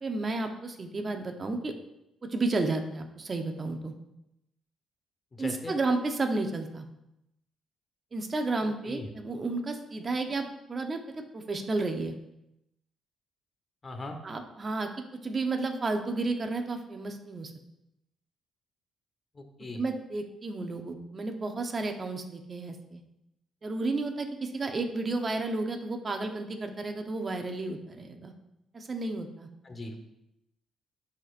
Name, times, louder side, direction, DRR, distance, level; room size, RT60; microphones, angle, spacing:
voice 1, 0.0-1.7 2.2-3.9 5.4-6.8 8.1-11.0 11.3-12.1 14.2-17.5 19.7-23.0 23.6-28.3 28.7-29.5, right 3 dB, 35° right, 4 dB, 0.8 m, -32 dB
voice 2, 5.3-5.8 8.6-9.1 13.8-14.2 19.3-19.8 29.6-30.0, left 2 dB, 30° left, 5 dB, 1.1 m, -39 dB
11.0 x 4.3 x 2.5 m, 0.86 s
cardioid pair, 90°, 0 cm